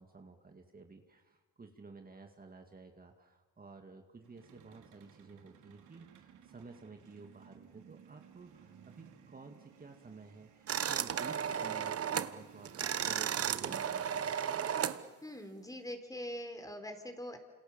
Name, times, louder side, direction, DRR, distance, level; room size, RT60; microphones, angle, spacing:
voice 1, 0.0-14.4, right 4 dB, 30° right, 4 dB, 2.3 m, -53 dB
sound 1, 4.2-13.8, right 7 dB, 75° right, 3.2 m, -56 dB
sound 2, 10.7-12.4 12.7-15.0, right 8 dB, 50° right, 1.2 m, -34 dB
voice 2, 15.2-17.4, equal, 10° left, 7 dB, 4.1 m, -43 dB
28.5 x 27.5 x 7.4 m, 1.3 s
cardioid pair, 90°, 30 cm